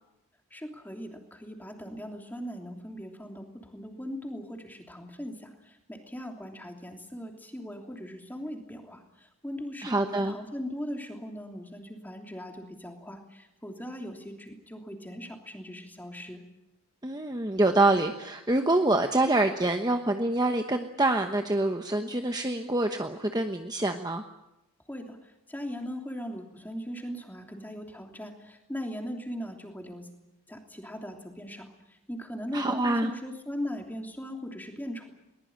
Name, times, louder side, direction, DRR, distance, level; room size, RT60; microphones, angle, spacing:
voice 1, 0.5-16.4 24.9-25.2 25.5-30.1 30.5-31.7 32.1-35.1, equal, 10° left, 3 dB, 3.1 m, -39 dB
voice 2, 9.8-10.3 17.0-24.2 32.5-33.1, right 2 dB, 20° right, 5 dB, 1.1 m, -26 dB
22.0 x 20.5 x 8.8 m, 0.92 s
head